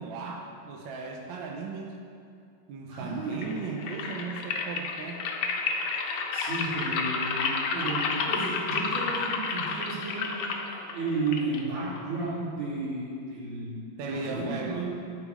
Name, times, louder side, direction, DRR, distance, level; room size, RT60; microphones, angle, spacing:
voice 1, 0.0-2.0 2.7-5.3 14.0-14.8, right 4 dB, 75° right, 1 dB, 1.3 m, -37 dB
voice 2, 2.9-3.5 6.3-10.6 10.9-14.9, right 3 dB, 90° right, -8 dB, 3.0 m, -33 dB
sound 1, 3.3-12.3, left 4 dB, 75° left, 1.5 m, -31 dB
12.5 x 5.2 x 3.5 m, 2.4 s
omnidirectional pair, 2.3 m